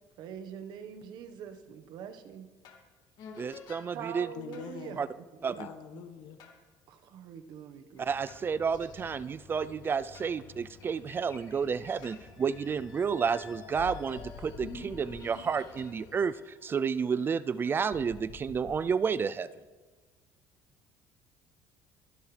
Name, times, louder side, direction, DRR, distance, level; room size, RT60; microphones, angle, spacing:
voice 1, 0.2-2.5 3.9-5.0 5.5-5.6 5.9-6.0 6.9-8.1, right 8 dB, 65° right, 1.2 m, -44 dB
sound 1, 2.6-2.9 3.2-3.8 4.5-4.7 6.4-6.6 8.3-10.3 10.9-11.0 11.6-17.3 17.6-18.7, left 4 dB, 65° left, 2.2 m, -49 dB
voice 2, 3.4-4.3 5.0-5.1 5.4-5.6 8.0-19.5, right 6 dB, 25° right, 0.4 m, -31 dB
voice 3, 4.3-5.1 5.6-6.4, left 8 dB, 80° left, 1.3 m, -44 dB
sound 2, 7.9-16.1, left 6 dB, 45° left, 2.6 m, -55 dB
24.5 x 11.0 x 3.3 m
cardioid pair, 125°, 8 cm